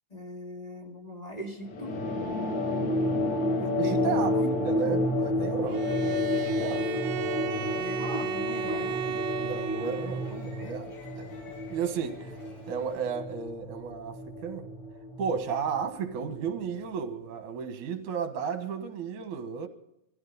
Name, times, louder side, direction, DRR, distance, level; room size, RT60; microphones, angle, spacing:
voice 1, 0.1-1.9 3.6-4.5 8.0-9.2, equal, 15° left, 2.0 m, -39 dB
sound 1, 1.7-16.6, left 2 dB, 45° left, 1.5 m, -31 dB
voice 2, 3.8-4.4 4.6-6.9 7.5-8.1 9.4-11.4 11.7-12.3 12.7-14.7 15.2-19.7, right 6 dB, 65° right, 2.7 m, -34 dB
sound 2, 5.5-13.1, left 1 dB, 70° left, 7.6 m, -53 dB
Bowed string instrument, 5.7-10.4, right 8 dB, 80° right, 2.5 m, -35 dB
22.0 x 15.0 x 4.1 m
omnidirectional pair, 4.0 m